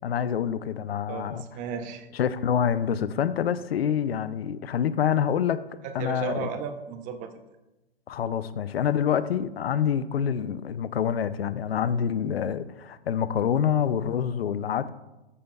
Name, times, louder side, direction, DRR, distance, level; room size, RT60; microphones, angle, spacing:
voice 1, 0.0-1.4 2.1-5.7 5.9-6.5 8.1-14.9, left 8 dB, 70° left, 15 dB, 0.6 m, -26 dB
voice 2, 1.1-2.1 5.8-7.3, right 6 dB, 25° right, 8 dB, 0.7 m, -34 dB
13.5 x 6.9 x 2.3 m, 1.0 s
hypercardioid pair, 120°, 31 cm